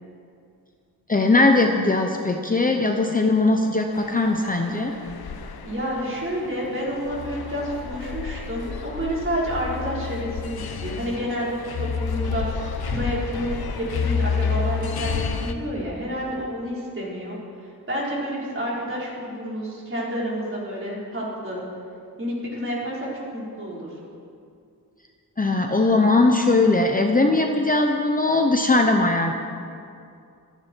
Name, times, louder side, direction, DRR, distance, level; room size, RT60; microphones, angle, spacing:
voice 1, 1.1-4.9 25.4-29.3, left 2 dB, 25° left, 3 dB, 0.8 m, -20 dB
sound 1, 3.9-15.5, left 5 dB, 90° left, 1.0 m, -30 dB
voice 2, 5.6-21.6 22.2-23.9, equal, 35° right, -6 dB, 4.5 m, -29 dB
26.0 x 9.8 x 4.6 m, 2.4 s
wide cardioid pair, 155°, 36 cm